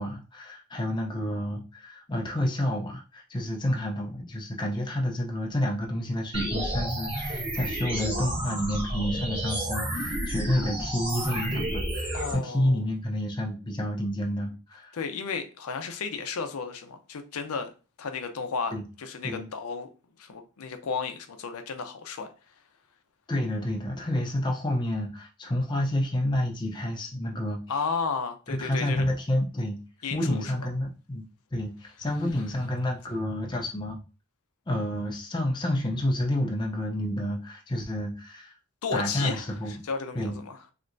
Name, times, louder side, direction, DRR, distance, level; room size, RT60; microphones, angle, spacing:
voice 1, 0.0-14.9 18.7-18.8 19.2-19.5 23.3-27.8 28.5-29.8 30.1-31.3 31.5-34.0 34.7-38.5 38.9-39.7 40.1-40.4, left 1 dB, 20° left, 0.5 m, -29 dB
sound 1, 6.3-12.3, right 1 dB, 25° right, 1.0 m, -31 dB
voice 2, 12.1-12.8 14.9-17.7 18.0-19.9 20.2-22.3 27.7-29.1 30.0-30.4 38.8-40.6, left 5 dB, 85° left, 0.5 m, -33 dB
3.3 x 2.9 x 2.5 m
head